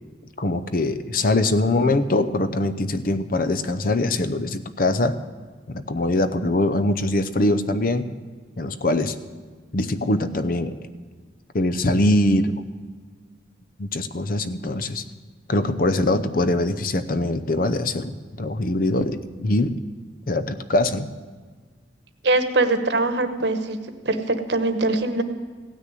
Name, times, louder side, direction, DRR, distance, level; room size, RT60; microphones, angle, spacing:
voice 1, 0.4-5.2 5.7-8.1 8.6-9.2 9.7-10.8 11.5-12.5 13.8-15.0 15.5-19.8 20.3-21.1, left 2 dB, 50° left, 12 dB, 0.7 m, -22 dB
voice 2, 22.2-23.8 24.0-25.2, right 2 dB, 70° right, 9 dB, 1.1 m, -22 dB
16.0 x 6.4 x 9.8 m, 1.5 s
head